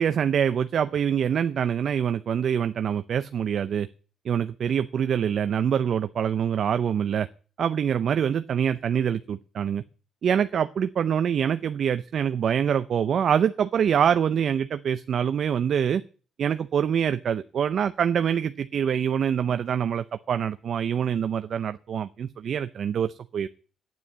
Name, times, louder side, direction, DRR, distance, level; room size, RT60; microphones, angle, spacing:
voice 1, 0.0-3.9 4.2-7.3 7.6-9.8 10.2-16.0 16.4-23.5, right 8 dB, 60° right, 11 dB, 0.5 m, -25 dB
9.6 x 9.3 x 8.4 m, 0.39 s
cardioid pair, 90°, 0 cm